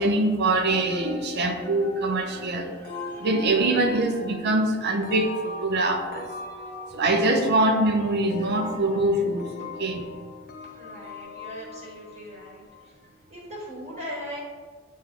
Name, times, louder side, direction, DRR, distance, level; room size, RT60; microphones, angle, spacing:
voice 1, 0.0-2.8 3.2-6.3 6.9-10.1, right 2 dB, 50° right, 5 dB, 0.6 m, -24 dB
sound 1, 0.7-13.1, left 3 dB, 45° left, 0.7 m, -40 dB
voice 2, 10.7-13.0 13.3-14.4, equal, 30° right, -5 dB, 1.3 m, -39 dB
8.1 x 3.2 x 3.7 m, 1.5 s
head